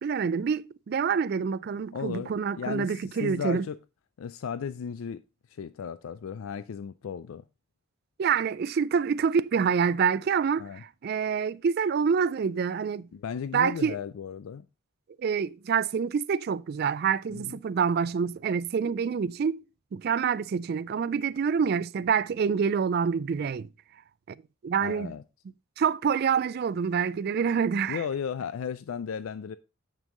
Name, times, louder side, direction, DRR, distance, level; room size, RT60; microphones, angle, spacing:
voice 1, 0.0-3.7 8.2-13.1 13.5-13.9 15.2-19.6 19.9-23.7 24.6-25.1 25.8-28.0, right 6 dB, 50° right, 0.3 m, -27 dB
voice 2, 1.9-3.8 4.2-5.2 5.5-7.4 10.6-10.8 13.1-14.7 17.3-17.6 24.8-25.2 27.9-29.6, left 7 dB, 85° left, 0.4 m, -35 dB
9.1 x 5.4 x 3.7 m
head